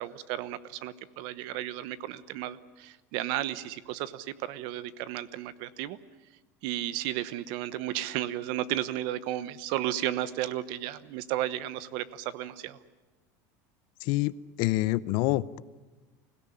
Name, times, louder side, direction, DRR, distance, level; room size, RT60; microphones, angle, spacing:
voice 1, 0.0-6.0 6.6-12.8, right 13 dB, 60° right, 17 dB, 1.1 m, -33 dB
voice 2, 14.0-15.6, left 18 dB, 60° left, 18 dB, 0.7 m, -27 dB
25.0 x 17.0 x 9.9 m, 1.2 s
supercardioid pair, 145°, 9 cm